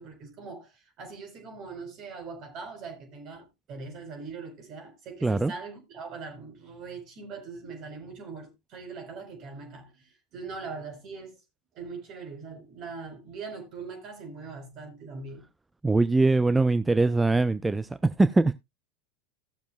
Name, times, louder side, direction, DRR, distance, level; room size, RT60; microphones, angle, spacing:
voice 1, 0.0-11.4 11.7-15.4, right 4 dB, 50° right, 4.5 m, -41 dB
voice 2, 15.8-18.5, right 3 dB, 10° right, 0.5 m, -22 dB
17.0 x 7.1 x 2.4 m
hypercardioid pair, 90°, 0 cm